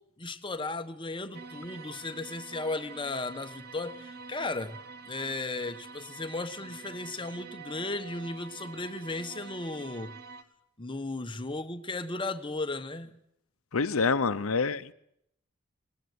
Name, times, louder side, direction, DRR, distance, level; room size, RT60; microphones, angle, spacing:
voice 1, 0.2-4.8 5.1-10.1 10.8-13.1, left 2 dB, 25° left, 1.2 m, -35 dB
sound 1, 1.3-10.4, right 5 dB, 50° right, 1.4 m, -47 dB
voice 2, 13.7-14.9, left 4 dB, 80° left, 0.8 m, -27 dB
19.0 x 18.0 x 9.5 m
head